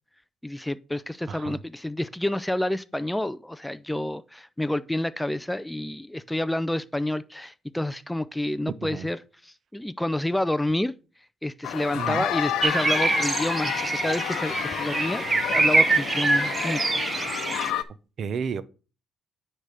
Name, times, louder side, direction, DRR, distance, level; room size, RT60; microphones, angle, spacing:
voice 1, 0.4-10.9 11.4-15.2 15.5-17.0, left 1 dB, 5° left, 0.3 m, -29 dB
voice 2, 1.3-1.6 8.8-9.1 11.9-12.3 18.2-18.6, right 6 dB, 50° right, 0.6 m, -31 dB
sound 1, 11.6-17.8, left 11 dB, 80° left, 0.7 m, -30 dB
sound 2, 12.6-17.7, right 3 dB, 25° right, 0.8 m, -25 dB
9.8 x 3.3 x 6.5 m
cardioid pair, 120°, 0 cm